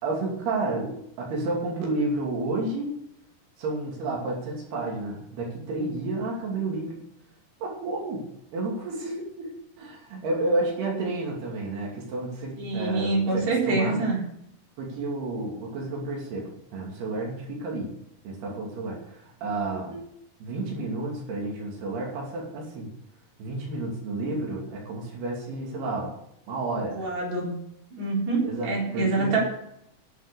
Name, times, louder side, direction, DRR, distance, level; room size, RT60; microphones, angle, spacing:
voice 1, 0.0-2.9 3.6-7.0 7.6-8.3 8.5-9.5 9.8-14.0 14.8-17.9 18.2-20.0 20.4-22.9 23.4-26.1 26.5-27.1 28.4-29.4, right 2 dB, 90° right, -2 dB, 4.8 m, -31 dB
voice 2, 12.6-14.2 19.9-20.0 26.9-27.6 27.9-29.4, right 3 dB, 45° right, -3 dB, 5.1 m, -26 dB
11.0 x 8.2 x 6.9 m, 0.75 s
omnidirectional pair, 4.5 m